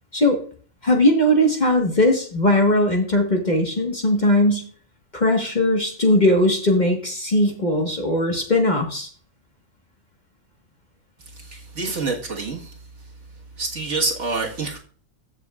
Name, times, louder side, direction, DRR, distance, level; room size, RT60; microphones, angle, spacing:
voice 1, 0.8-4.6 5.1-9.1, left 1 dB, 35° left, 2 dB, 1.5 m, -19 dB
voice 2, 11.3-12.8 13.6-14.8, right 3 dB, 55° right, -1 dB, 1.9 m, -27 dB
15.0 x 6.5 x 2.4 m, 0.43 s
omnidirectional pair, 1.4 m